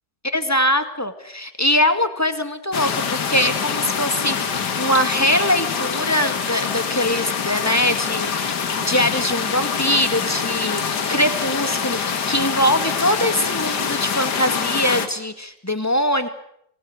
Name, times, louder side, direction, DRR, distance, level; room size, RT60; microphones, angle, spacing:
voice 1, 0.3-8.5 8.8-16.3, left 1 dB, 10° left, 9 dB, 2.0 m, -22 dB
sound 1, 2.7-15.1, left 6 dB, 65° left, 2.3 m, -25 dB
26.0 x 19.5 x 9.8 m, 0.73 s
omnidirectional pair, 1.9 m